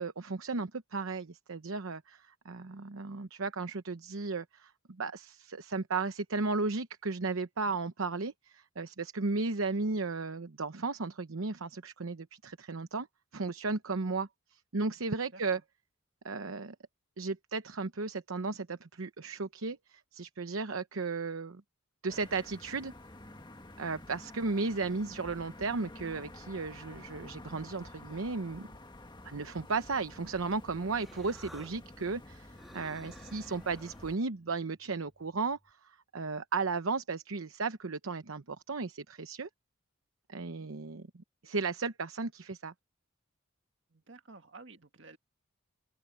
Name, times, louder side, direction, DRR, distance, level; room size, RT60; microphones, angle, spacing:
voice 1, 0.0-13.1 13.3-15.6 16.2-16.7 17.2-21.6 22.0-22.9 23.8-28.7 29.2-39.5 40.3-42.7, right 4 dB, 80° right, 0.9 m, -35 dB
voice 2, 15.3-15.6 40.5-40.7 43.9-45.2, right 3 dB, 60° right, 1.8 m, -53 dB
sound 1, 22.1-34.2, left 1 dB, 20° left, 1.7 m, -50 dB
Human voice, 30.5-35.7, equal, ahead, 1.6 m, -57 dB
open air
head